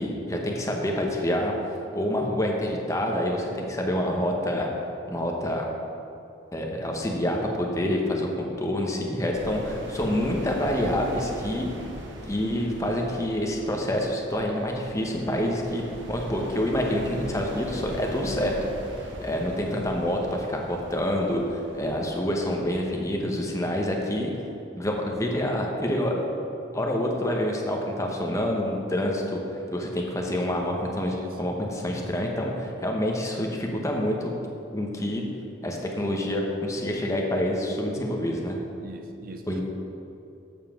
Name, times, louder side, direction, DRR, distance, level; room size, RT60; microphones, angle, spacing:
voice 1, 0.0-1.5 1.9-4.7 5.1-5.6 6.5-11.7 12.3-15.8 16.1-18.5 19.2-24.3 24.7-26.2 26.7-29.4 29.7-34.3 34.7-35.2 35.6-38.6 39.5-39.6, left 1 dB, 15° left, 0 dB, 0.9 m, -27 dB
sound 1, 9.3-23.3, equal, 80° right, 1.3 m, -41 dB
voice 2, 31.0-31.4 38.8-39.6, equal, 50° right, 5 dB, 0.6 m, -42 dB
7.0 x 5.6 x 7.3 m, 2.8 s
head